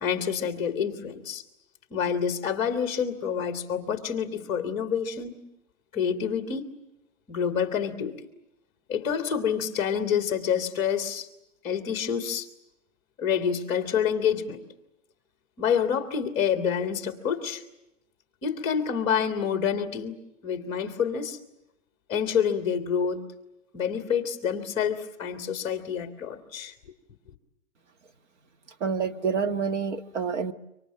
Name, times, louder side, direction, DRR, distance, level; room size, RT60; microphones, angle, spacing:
voice 1, 0.0-1.4 1.9-5.3 5.9-6.7 7.3-8.3 8.9-11.3 11.6-12.5 13.2-14.6 15.6-17.6 18.4-21.4 22.1-23.2 23.7-26.7, left 7 dB, 15° left, 6 dB, 1.5 m, -27 dB
voice 2, 28.8-30.5, right 6 dB, 60° right, 8 dB, 1.8 m, -28 dB
26.0 x 25.0 x 7.7 m, 0.87 s
hypercardioid pair, 170°, 40 cm